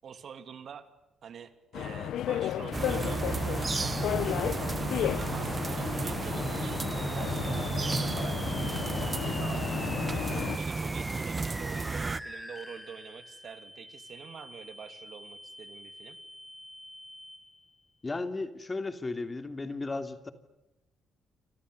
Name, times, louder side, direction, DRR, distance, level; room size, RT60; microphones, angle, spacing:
voice 1, 0.0-0.9 1.2-3.3 4.5-8.4 9.0-16.2, right 7 dB, 60° right, 10 dB, 2.9 m, -46 dB
sound 1, 1.7-10.6, left 11 dB, 75° left, 0.9 m, -34 dB
sound 2, 2.7-12.2, right 4 dB, 30° right, 1.1 m, -32 dB
sound 3, 6.3-17.7, left 1 dB, 5° left, 2.8 m, -46 dB
voice 2, 18.0-20.3, left 3 dB, 25° left, 9 dB, 2.9 m, -35 dB
29.0 x 26.5 x 6.8 m, 0.94 s
cardioid pair, 90°, 0 cm